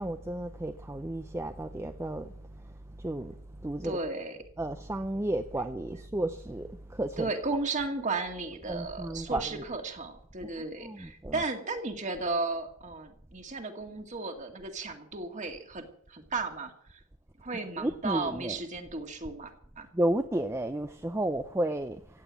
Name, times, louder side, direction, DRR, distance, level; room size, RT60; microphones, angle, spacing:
voice 1, 0.0-2.3 3.0-3.3 3.6-4.0 4.6-7.3 8.7-9.6 10.8-11.4 17.7-18.6 19.9-22.0, right 1 dB, 15° right, 0.5 m, -32 dB
voice 2, 3.8-4.4 7.2-17.0 17.4-19.9, right 3 dB, 35° right, 2.1 m, -35 dB
16.0 x 9.3 x 8.2 m
head